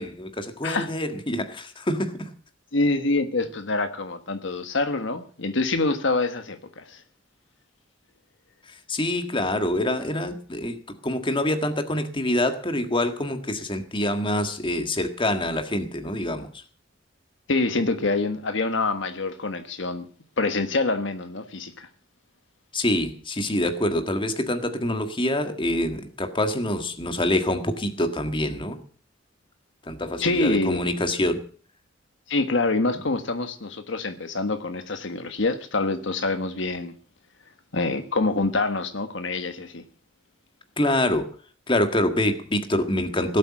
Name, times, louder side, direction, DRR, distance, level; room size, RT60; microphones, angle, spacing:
voice 1, 0.0-2.3 8.7-16.6 22.7-28.8 29.8-31.4 40.8-41.3 41.7-43.4, left 1 dB, 25° left, 1.7 m, -26 dB
voice 2, 2.7-7.0 17.5-20.1 20.4-21.9 30.2-30.8 32.3-36.9 37.7-39.8, left 3 dB, 70° left, 1.4 m, -26 dB
17.5 x 8.4 x 7.3 m
head